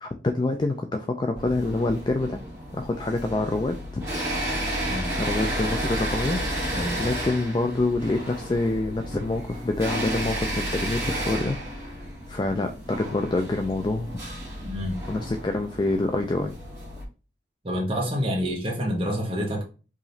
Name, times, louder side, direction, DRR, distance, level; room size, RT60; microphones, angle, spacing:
voice 1, 0.0-2.4 2.7-4.0 5.2-6.4 7.0-14.2 15.1-16.5, left 2 dB, 25° left, 0.3 m, -26 dB
sound 1, 1.3-17.0, equal, 15° right, 1.6 m, -32 dB
voice 2, 4.8-5.2 6.7-7.2 14.6-15.0 17.6-19.6, equal, 30° right, 1.2 m, -28 dB
4.8 x 3.0 x 2.7 m
head